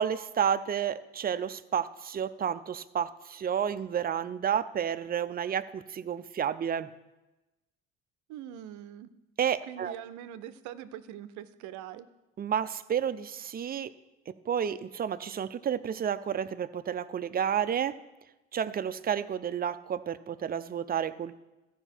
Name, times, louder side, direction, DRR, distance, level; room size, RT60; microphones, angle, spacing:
voice 1, 0.0-6.9 9.4-9.9 12.4-13.9 14.5-18.0 18.5-21.4, right 8 dB, 30° right, 12 dB, 0.5 m, -31 dB
voice 2, 8.3-9.1 9.7-12.1, right 11 dB, 75° right, 13 dB, 0.6 m, -43 dB
14.5 x 5.1 x 4.5 m, 1.0 s
supercardioid pair, 65°, 30 cm